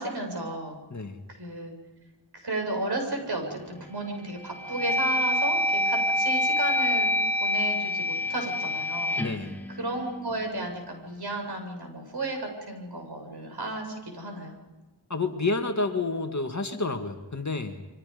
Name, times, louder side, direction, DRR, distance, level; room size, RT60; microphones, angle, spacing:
voice 1, 0.0-0.8 1.3-1.7 2.3-7.1 7.4-9.2 9.8-14.5, right 2 dB, 55° right, 3 dB, 7.7 m, -33 dB
voice 2, 0.9-1.2 9.2-9.5 15.1-17.8, left 3 dB, 40° left, 5 dB, 2.2 m, -29 dB
sound 1, 3.5-3.9 4.4-10.6, left 1 dB, 5° left, 1.9 m, -27 dB
29.0 x 24.5 x 5.3 m, 1.1 s
wide cardioid pair, 95°, 46 cm